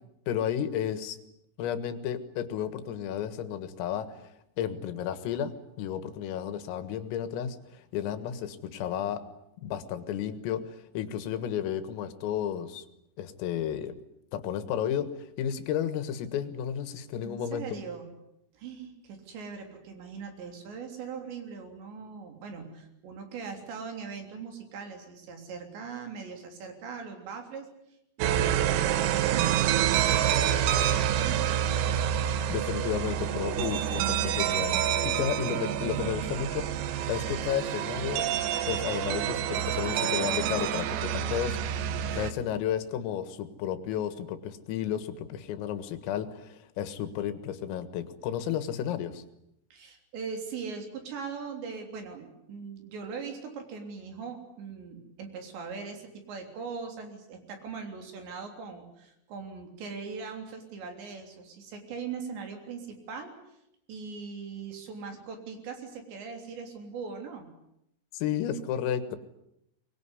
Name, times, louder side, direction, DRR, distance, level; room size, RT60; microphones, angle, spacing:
voice 1, 0.3-1.2 1.6-4.3 4.6-9.2 9.6-12.8 13.2-14.0 14.3-17.6 32.5-38.3 38.7-49.2 68.1-69.2, left 9 dB, 85° left, 12 dB, 4.2 m, -32 dB
voice 2, 17.2-18.1 18.5-27.7 28.2-31.6 35.5-36.2 49.7-63.3 63.9-67.5, right 5 dB, 60° right, 5 dB, 5.5 m, -40 dB
sound 1, 28.2-42.3, right 10 dB, 85° right, 4.0 m, -27 dB
24.0 x 21.0 x 9.8 m, 0.81 s
omnidirectional pair, 5.8 m